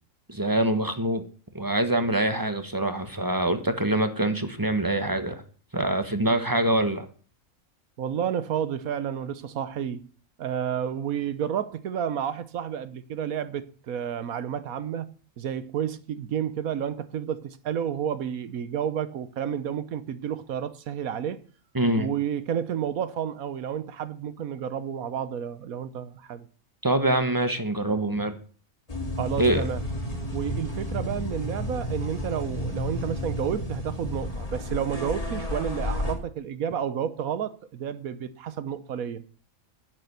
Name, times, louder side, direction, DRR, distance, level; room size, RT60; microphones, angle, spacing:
voice 1, 0.3-1.2 1.5-5.4 5.7-7.1 21.7-22.1 26.8-28.3 29.4-29.6, right 1 dB, 15° right, 1.2 m, -24 dB
voice 2, 8.0-10.1 10.4-15.1 15.4-21.4 22.0-26.5 29.2-29.8 30.3-39.2, right 8 dB, 80° right, 1.3 m, -31 dB
sound 1, 28.9-36.1, left 1 dB, 25° left, 2.3 m, -31 dB
10.5 x 9.4 x 6.8 m
omnidirectional pair, 1.5 m